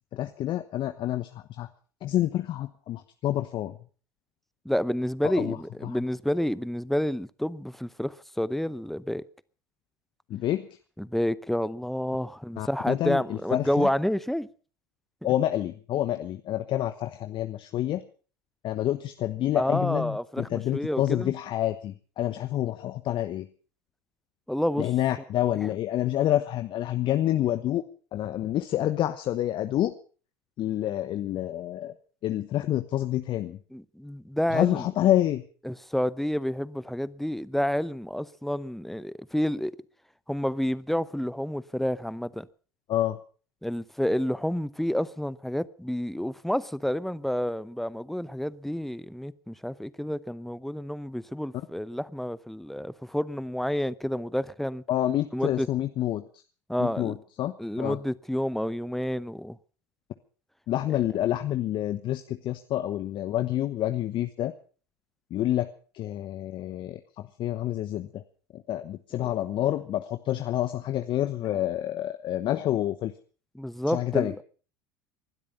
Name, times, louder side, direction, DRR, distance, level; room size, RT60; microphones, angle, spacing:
voice 1, 0.1-1.7 2.0-3.7 5.2-5.6 5.8-6.0 10.3-10.7 12.6-13.9 15.2-18.0 18.6-23.5 24.8-27.8 28.1-29.9 30.6-31.9 32.2-33.6 34.5-35.4 42.9-43.2 54.9-56.2 56.8-58.0 60.7-64.5 65.3-65.7 65.9-68.2 68.5-73.1 73.9-74.3, left 13 dB, 45° left, 1.0 m, -28 dB
voice 2, 4.6-9.2 11.0-14.5 15.2-15.3 19.5-21.3 24.5-24.9 33.7-34.9 35.6-39.8 40.3-42.5 43.6-54.8 55.3-55.7 56.7-57.1 57.6-59.6 60.9-61.0 73.5-74.4, equal, ahead, 0.8 m, -29 dB
20.5 x 12.5 x 5.6 m
hypercardioid pair, 75°, 12 cm